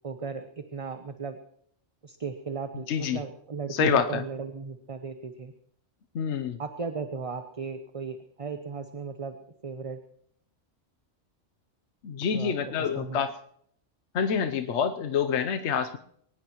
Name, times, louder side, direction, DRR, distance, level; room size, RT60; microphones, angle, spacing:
voice 1, 0.0-1.4 2.0-5.5 6.6-9.3 9.6-10.0 12.3-12.5 12.8-13.2, right 5 dB, 30° right, 7 dB, 0.9 m, -36 dB
voice 2, 2.9-3.2 3.7-4.2 6.1-6.6 12.0-13.3 14.1-16.0, left 7 dB, 70° left, 7 dB, 1.1 m, -27 dB
22.0 x 19.0 x 3.1 m, 0.67 s
omnidirectional pair, 1.2 m